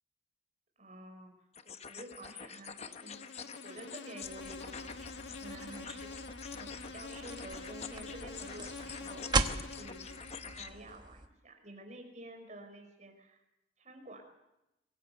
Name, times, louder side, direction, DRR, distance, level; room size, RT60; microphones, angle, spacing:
voice 1, 0.8-6.2 6.5-10.0 10.4-13.4 13.8-14.2, right 1 dB, 40° right, 4 dB, 5.5 m, -50 dB
sound 1, 1.5-10.7, left 6 dB, 35° left, 0.9 m, -47 dB
Insect, 2.8-11.0, left 4 dB, 85° left, 1.4 m, -47 dB
sound 2, 4.2-11.3, right 3 dB, 25° right, 1.2 m, -39 dB
24.0 x 15.5 x 8.0 m, 0.90 s
head